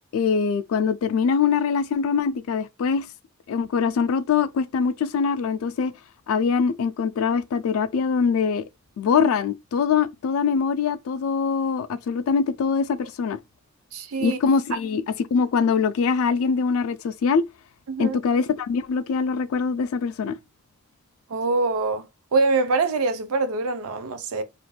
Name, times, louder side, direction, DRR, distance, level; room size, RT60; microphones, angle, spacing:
voice 1, 0.1-3.1 3.5-5.9 6.3-8.6 9.0-13.4 14.2-15.0 15.3-17.4 18.0-20.4, left 5 dB, 70° left, 0.3 m, -23 dB
voice 2, 13.9-14.4 17.9-18.2 21.3-22.1 22.3-24.4, right 3 dB, 75° right, 0.5 m, -24 dB
2.4 x 2.1 x 3.1 m
head